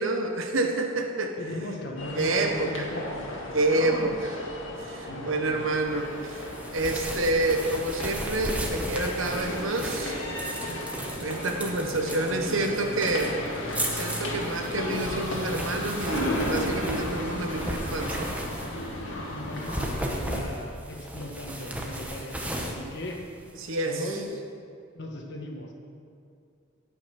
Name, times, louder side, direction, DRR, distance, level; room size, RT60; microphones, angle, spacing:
voice 1, 0.0-1.7 2.2-2.9 3.5-4.3 4.8-10.2 11.2-13.3 13.9-18.3 23.6-24.2, right 2 dB, 85° right, 4 dB, 1.3 m, -28 dB
voice 2, 1.4-4.2 5.0-5.6 11.8-13.4 19.3-23.2 23.8-24.3 24.9-25.7, left 1 dB, 60° left, 1 dB, 1.6 m, -38 dB
sound 1, 2.0-20.0, left 1 dB, 75° left, 2.0 m, -34 dB
sound 2, 6.3-19.0 19.5-23.8, right 1 dB, 5° right, 1.1 m, -35 dB
17.0 x 5.9 x 6.0 m, 2.5 s
head